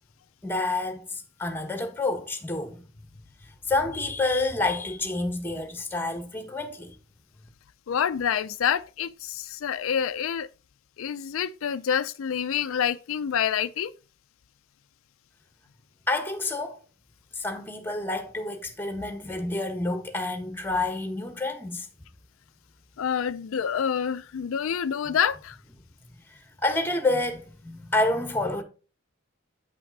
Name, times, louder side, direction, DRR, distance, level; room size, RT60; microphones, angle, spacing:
voice 1, 0.4-7.0 7.4-7.5 16.1-16.8 17.3-21.9 25.0-25.2 26.2-28.6, left 2 dB, 10° left, 1.4 m, -29 dB
voice 2, 7.9-10.5 11.0-13.9 23.0-25.6, left 8 dB, 75° left, 0.4 m, -27 dB
9.1 x 5.9 x 4.0 m
head